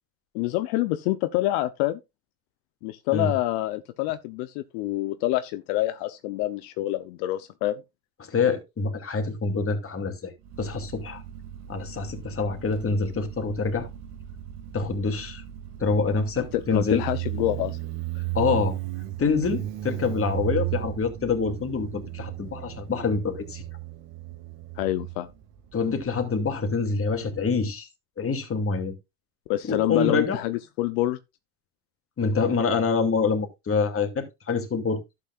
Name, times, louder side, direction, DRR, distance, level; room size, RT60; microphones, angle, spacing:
voice 1, 0.3-2.0 2.8-7.8 16.5-17.8 18.1-18.2 24.8-25.3 29.5-31.2, left 15 dB, 70° left, 0.9 m, -27 dB
voice 2, 8.3-10.3 10.6-11.2 11.7-13.9 14.7-15.4 15.8-17.0 18.3-18.8 19.2-23.6 25.7-27.9 28.2-28.9 29.6-30.4 32.2-35.0, left 4 dB, 30° left, 2.6 m, -26 dB
Motorcycle, 10.4-27.6, right 15 dB, 60° right, 2.6 m, -36 dB
12.0 x 8.5 x 2.5 m
supercardioid pair, 90°, 46 cm